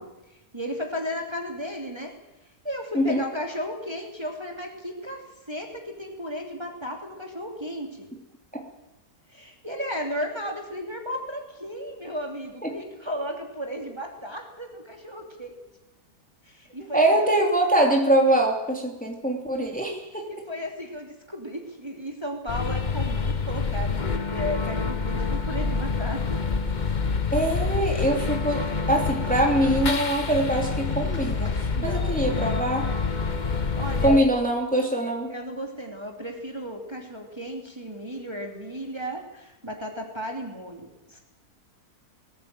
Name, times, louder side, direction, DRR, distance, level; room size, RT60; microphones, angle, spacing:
voice 1, 0.0-2.2 2.6-8.1 9.3-15.6 16.4-17.0 20.3-26.4 31.7-32.2 33.5-34.3 35.0-41.2, equal, 15° right, 2 dB, 3.0 m, -34 dB
voice 2, 16.9-20.3 27.3-32.9 34.0-35.3, right 1 dB, 5° left, 1 dB, 2.8 m, -23 dB
sound 1, 22.5-34.2, left 4 dB, 35° left, 1.0 m, -27 dB
19.5 x 18.0 x 8.9 m, 0.97 s
omnidirectional pair, 1.7 m